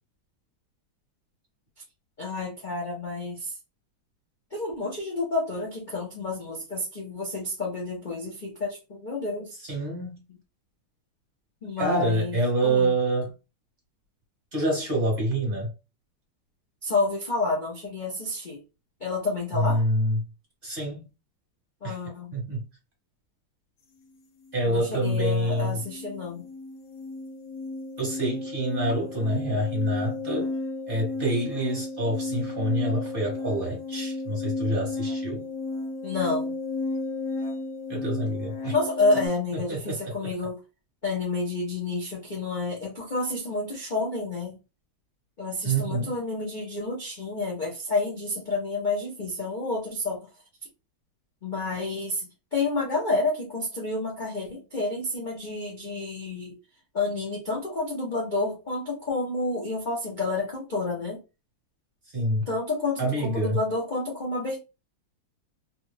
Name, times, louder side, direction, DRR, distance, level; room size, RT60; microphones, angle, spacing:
voice 1, 2.2-3.5 4.5-9.5 11.6-12.4 12.6-12.9 16.8-18.6 19.0-19.8 21.8-22.3 24.7-26.4 36.0-36.6 38.7-40.5 41.0-44.6 45.4-50.3 51.4-56.6 56.9-61.2 62.5-64.6, left 3 dB, 45° left, 0.6 m, -29 dB
voice 2, 9.6-10.2 11.8-13.3 14.5-15.7 19.6-20.2 20.6-21.1 21.8-22.0 22.3-22.6 24.5-25.8 28.0-30.5 30.9-35.4 37.9-38.7 39.7-40.1 45.6-46.1 62.1-62.4 63.0-63.6, right 1 dB, 30° right, 1.5 m, -26 dB
sound 1, 24.5-24.6 24.9-39.3, left 3 dB, 75° left, 1.4 m, -33 dB
3.3 x 2.3 x 3.2 m
omnidirectional pair, 2.2 m